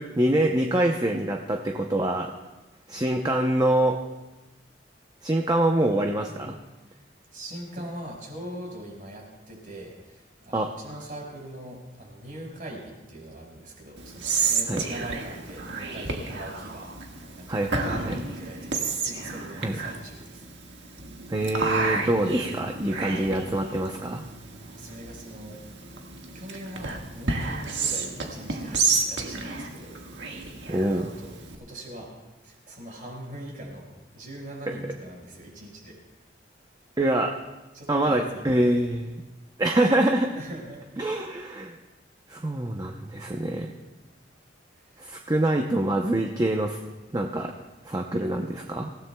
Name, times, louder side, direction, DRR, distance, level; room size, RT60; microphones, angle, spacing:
voice 1, 0.0-2.3 2.9-4.0 5.2-6.6 10.5-10.7 14.7-14.8 17.5-18.2 19.6-19.8 21.3-24.2 30.7-31.1 37.0-37.4 37.9-39.2 39.6-40.4 41.0-41.8 42.3-43.7 45.0-46.8 47.1-47.5 47.8-48.9, right 1 dB, 20° right, 3 dB, 0.7 m, -25 dB
voice 2, 7.3-20.5 24.6-25.6 26.3-30.0 30.3-30.6 30.9-32.1 32.4-36.0 37.7-38.7 40.3-41.2 44.7-45.1, right 1 dB, 45° right, -1 dB, 5.2 m, -42 dB
Whispering, 14.0-31.5, right 4 dB, 75° right, 1.7 m, -31 dB
26.0 x 16.5 x 2.3 m, 1.1 s
head